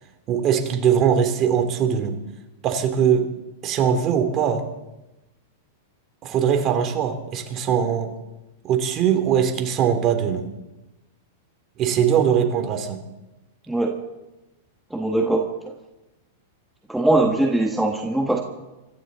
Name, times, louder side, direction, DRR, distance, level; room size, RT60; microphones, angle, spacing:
voice 1, 0.3-2.1 2.6-3.3 3.6-4.6 6.2-8.1 8.6-10.5 11.8-13.0, right 8 dB, 35° right, 5 dB, 2.9 m, -21 dB
voice 2, 13.7-14.0 14.9-15.5 16.9-18.4, right 2 dB, 5° right, 1 dB, 1.4 m, -21 dB
25.5 x 13.5 x 4.1 m, 1.0 s
hypercardioid pair, 125°, 0 cm